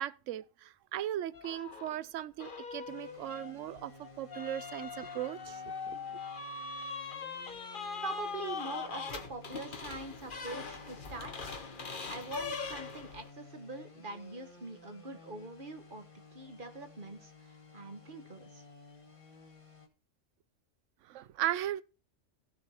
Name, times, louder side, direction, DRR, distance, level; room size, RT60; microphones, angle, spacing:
voice 1, 0.0-3.9 4.2-6.0 21.1-21.8, right 12 dB, 75° right, 1.0 m, -37 dB
sound 1, 1.3-2.0 2.4-13.3, left 5 dB, 40° left, 1.3 m, -41 dB
sound 2, 2.9-19.9, left 2 dB, 25° left, 1.5 m, -55 dB
voice 2, 8.0-11.5 12.1-16.1 16.3-18.6, right 2 dB, 40° right, 1.7 m, -43 dB
16.0 x 7.0 x 2.9 m
omnidirectional pair, 1.3 m